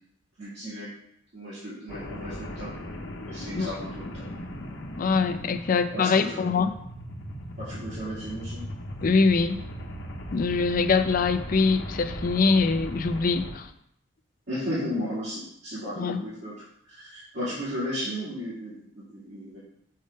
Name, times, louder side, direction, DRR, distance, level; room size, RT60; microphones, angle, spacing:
voice 1, 0.4-0.9 1.3-2.7 3.3-4.3 5.7-6.4 7.6-8.6 14.5-16.5 16.8-19.6, equal, 60° right, -11 dB, 2.2 m, -34 dB
sound 1, 1.9-13.6, equal, 60° left, 0.9 m, -38 dB
voice 2, 5.0-6.7 9.0-9.6 10.3-13.7 16.0-16.2, left 4 dB, 45° left, 9 dB, 0.4 m, -23 dB
6.5 x 3.6 x 5.2 m, 0.74 s
head